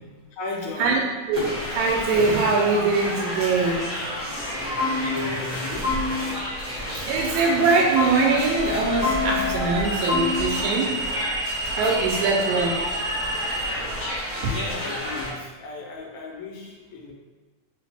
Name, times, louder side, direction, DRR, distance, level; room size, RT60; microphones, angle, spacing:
voice 1, 0.3-1.0 4.5-5.9 12.1-12.5 13.6-13.7 14.4-17.1, left 3 dB, 80° left, -1 dB, 2.2 m, -35 dB
sound 1, 1.3-15.3, equal, 45° right, 0.6 m, -31 dB
voice 2, 1.7-3.8 7.1-10.9 11.8-12.7, right 4 dB, 80° right, -2 dB, 1.9 m, -22 dB
sound 2, 4.5-4.6 4.8-5.5 5.8-6.5 7.9-8.6 9.0-9.7 10.1-10.5, left 3 dB, 45° left, 0.7 m, -27 dB
sound 3, 5.3-5.6 8.6-13.6, left 1 dB, 65° left, 1.7 m, -30 dB
4.8 x 2.8 x 3.3 m, 1.3 s
omnidirectional pair, 3.4 m